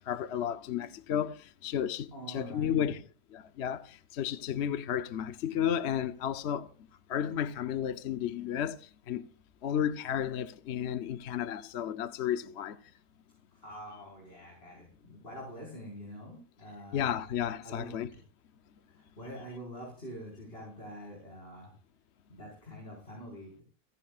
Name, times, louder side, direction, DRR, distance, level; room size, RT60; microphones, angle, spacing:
voice 1, 0.1-3.0 3.3-6.7 7.1-9.2 9.6-12.8 16.9-18.1, left 9 dB, 55° left, 0.9 m, -33 dB
voice 2, 2.1-3.0 13.5-17.2 17.6-18.2 18.9-21.7 22.3-23.6, equal, 35° left, 5.3 m, -46 dB
30.0 x 10.5 x 2.4 m
omnidirectional pair, 1.7 m